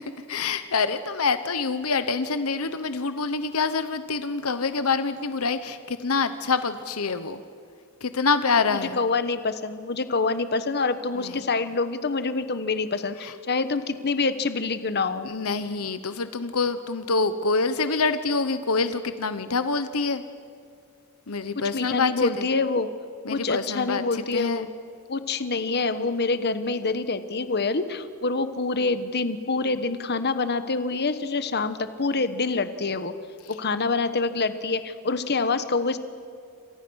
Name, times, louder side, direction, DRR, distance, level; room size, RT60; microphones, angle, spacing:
voice 1, 0.3-7.4 8.0-9.0 11.1-11.5 13.2-13.3 15.2-20.2 21.3-22.5 23.2-24.7, left 4 dB, 70° left, 11 dB, 1.1 m, -26 dB
voice 2, 8.7-15.3 21.7-22.9 23.3-24.7 25.1-33.1 33.5-36.0, left 3 dB, 50° left, 11 dB, 1.2 m, -26 dB
29.0 x 26.5 x 6.4 m, 2.3 s
head